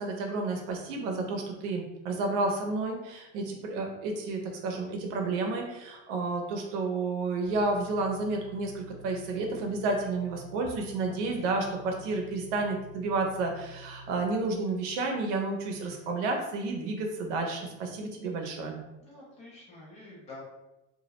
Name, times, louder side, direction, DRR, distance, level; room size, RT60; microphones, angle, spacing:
voice 1, 0.0-18.8, right 3 dB, 75° right, 2 dB, 0.6 m, -31 dB
sound 1, 7.4-14.3, right 1 dB, 75° left, 0.9 m, -49 dB
voice 2, 11.1-11.5 19.0-20.4, left 2 dB, 20° left, -6 dB, 0.4 m, -48 dB
2.3 x 2.0 x 2.9 m, 0.96 s
cardioid pair, 175°, 36 cm